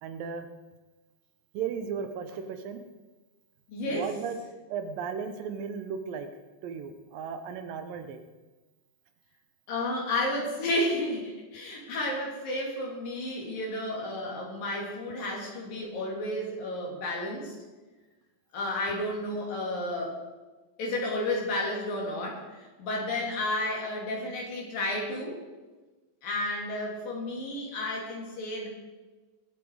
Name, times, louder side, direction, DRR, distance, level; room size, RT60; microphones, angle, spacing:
voice 1, 0.0-0.5 1.5-2.8 3.9-4.4 4.7-6.3 6.6-8.2, right 6 dB, 75° right, 8 dB, 2.6 m, -35 dB
voice 2, 3.7-4.1 9.7-17.5 18.5-20.2 20.8-22.4 22.8-25.4 26.2-28.7, left 1 dB, 65° left, -1 dB, 4.7 m, -32 dB
22.0 x 8.4 x 4.8 m, 1.2 s
omnidirectional pair, 4.3 m